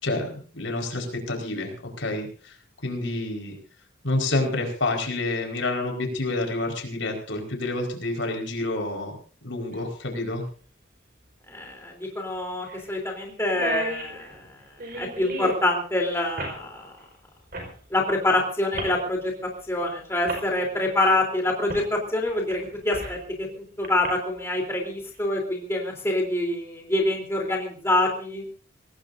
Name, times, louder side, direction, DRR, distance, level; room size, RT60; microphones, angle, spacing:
voice 1, 0.0-2.6 2.8-3.5 4.0-9.2 9.4-10.5, left 2 dB, 75° left, 2 dB, 4.9 m, -28 dB
sound 1, 9.7-9.8 11.6-11.7 12.0-12.1 12.7-12.9 13.2-13.3 13.4-15.6 16.4-16.6 17.5-17.7 18.7-19.0 19.8-19.9 20.3-20.4 21.7-21.9 22.3-23.2 23.8-24.1, right 2 dB, 45° right, 4.9 m, -34 dB
voice 2, 11.5-14.5 14.9-17.0 17.9-23.5 23.8-28.4, left 2 dB, 15° left, 0 dB, 3.5 m, -26 dB
24.5 x 18.5 x 2.7 m, 0.41 s
head